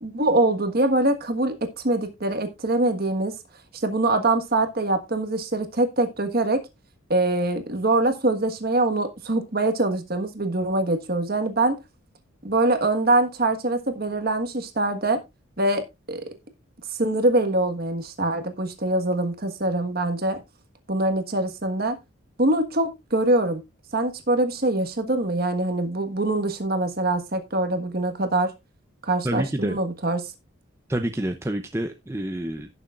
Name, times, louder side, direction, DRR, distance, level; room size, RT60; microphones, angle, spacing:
voice 1, 0.0-3.3 3.8-6.6 7.1-11.8 12.4-15.2 15.6-16.3 16.9-20.4 20.9-22.0 22.4-23.6 23.9-28.5 29.0-30.3, right 2 dB, 45° right, 1.5 m, -24 dB
voice 2, 29.2-29.8 30.9-32.7, right 1 dB, 15° right, 0.6 m, -28 dB
17.0 x 6.9 x 2.5 m
head